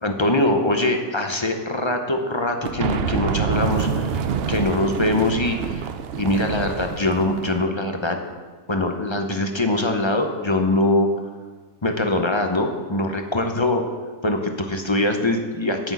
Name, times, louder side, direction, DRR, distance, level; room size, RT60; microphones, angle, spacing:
voice 1, 0.0-4.2 4.5-5.8 6.2-8.2 8.7-11.1 11.8-13.8 14.2-15.9, left 1 dB, 25° left, 5 dB, 0.7 m, -22 dB
sound 1, 2.6-7.7, right 7 dB, 55° right, 0.7 m, -26 dB
9.0 x 6.2 x 8.2 m, 1.4 s
omnidirectional pair, 1.4 m